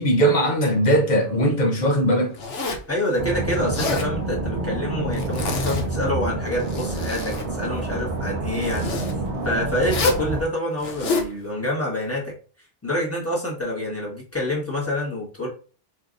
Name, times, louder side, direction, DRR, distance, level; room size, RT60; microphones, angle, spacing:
voice 1, 0.0-2.4, right 1 dB, 45° left, 0.7 m, -19 dB
Zipper (clothing), 2.4-2.9 3.6-4.1 5.1-5.9 6.5-7.5 8.6-9.1 9.8-10.3 10.8-11.3, left 3 dB, 80° left, 1.0 m, -28 dB
voice 2, 2.9-8.9 9.4-12.3 12.8-15.5, left 1 dB, 10° left, 1.2 m, -27 dB
sound 1, 3.1-10.4, right 2 dB, 70° right, 1.0 m, -28 dB
4.5 x 2.6 x 2.5 m
omnidirectional pair, 1.2 m